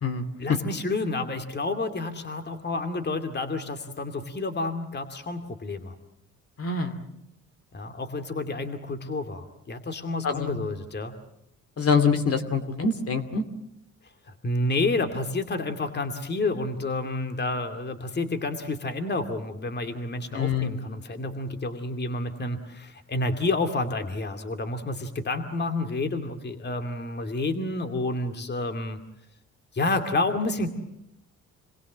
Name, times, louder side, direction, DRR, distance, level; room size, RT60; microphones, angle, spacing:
voice 1, 0.4-5.9 7.7-11.1 14.4-29.0 29.7-30.7, left 2 dB, 35° left, 7 dB, 2.5 m, -29 dB
voice 2, 6.6-7.0 10.2-10.7 11.8-13.4 20.3-20.9, left 5 dB, 50° left, 9 dB, 2.7 m, -25 dB
27.5 x 21.0 x 7.5 m, 0.81 s
cardioid pair, 90°, 30 cm